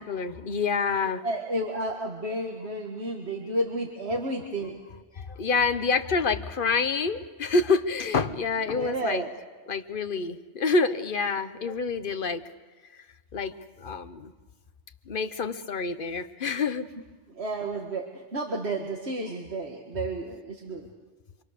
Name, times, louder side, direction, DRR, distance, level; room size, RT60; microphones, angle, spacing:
voice 1, 0.0-1.2 5.2-9.2 9.7-12.4 13.3-14.3 15.1-16.8, left 4 dB, 50° left, 10 dB, 1.1 m, -27 dB
voice 2, 1.2-4.8 8.7-9.3 17.3-20.9, right 1 dB, 70° right, 1 dB, 2.0 m, -31 dB
26.0 x 26.0 x 6.6 m, 1.4 s
omnidirectional pair, 1.1 m